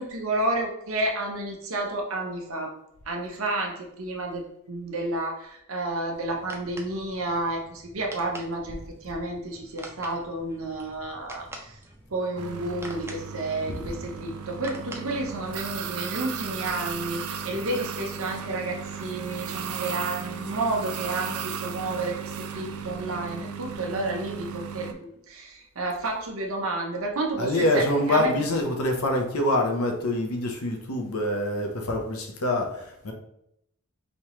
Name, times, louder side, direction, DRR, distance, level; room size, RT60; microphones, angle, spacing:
voice 1, 0.0-2.7 3.1-11.8 12.1-27.8 28.1-28.3, right 2 dB, 65° right, 0 dB, 0.9 m, -31 dB
sound 1, 6.1-15.8, right 1 dB, 10° right, 0.5 m, -46 dB
sound 2, 12.4-24.9, right 7 dB, 85° right, 0.5 m, -35 dB
voice 2, 27.4-33.1, left 1 dB, 75° left, 3 dB, 0.8 m, -25 dB
5.3 x 2.9 x 3.0 m, 0.77 s
head